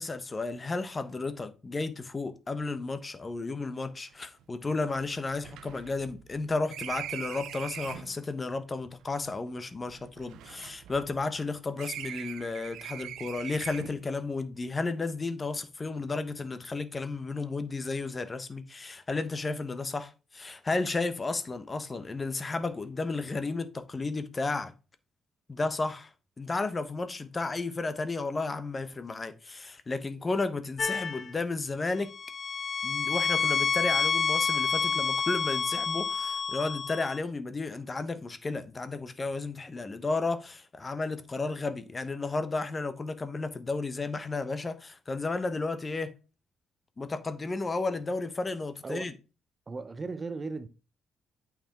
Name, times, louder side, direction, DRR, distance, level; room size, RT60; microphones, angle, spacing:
voice 1, 0.0-24.7 25.5-26.1 26.4-32.1 32.8-46.1 47.0-49.1, left 3 dB, 30° left, 1.0 m, -33 dB
sound 1, 4.1-4.2 4.4-4.5 4.9-8.2 9.0-11.4 11.8-14.1, right 11 dB, 85° right, 0.5 m, -42 dB
sound 2, 30.8-31.3 32.1-37.2, left 6 dB, 45° left, 0.4 m, -29 dB
voice 2, 49.7-50.7, right 4 dB, 30° right, 0.7 m, -36 dB
8.6 x 4.9 x 3.5 m
cardioid pair, 90°, 0 cm